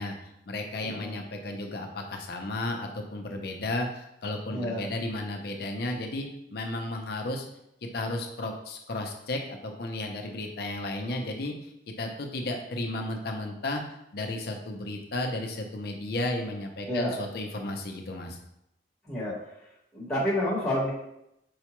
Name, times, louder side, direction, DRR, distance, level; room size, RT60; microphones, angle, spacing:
voice 1, 0.0-7.4 7.8-11.5 12.0-18.4, left 2 dB, 60° left, 3 dB, 0.5 m, -33 dB
voice 2, 0.8-1.2 4.5-4.8 16.9-17.1 19.0-19.3 19.9-20.9, left 1 dB, 5° left, -9 dB, 1.0 m, -29 dB
4.7 x 2.2 x 3.0 m, 0.80 s
head